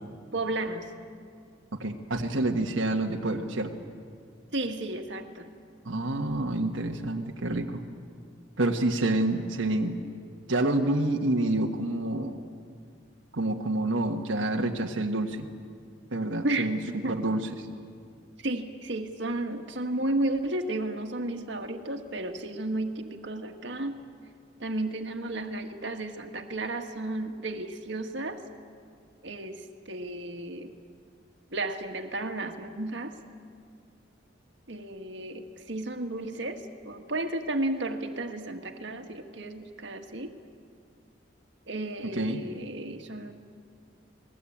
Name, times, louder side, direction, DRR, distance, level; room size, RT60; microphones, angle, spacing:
voice 1, 0.3-0.9 4.5-5.5 16.4-17.2 18.4-23.9 24.6-28.4 29.2-30.7 31.5-33.1 34.7-40.3 41.7-43.3, right 2 dB, 65° right, 5 dB, 1.8 m, -33 dB
voice 2, 1.7-3.7 5.8-7.8 8.6-10.0 10.5-12.4 13.3-15.5 16.1-16.8 17.1-17.5 42.1-42.4, right 2 dB, 90° right, 1 dB, 1.6 m, -28 dB
29.0 x 20.5 x 8.7 m, 2.2 s
head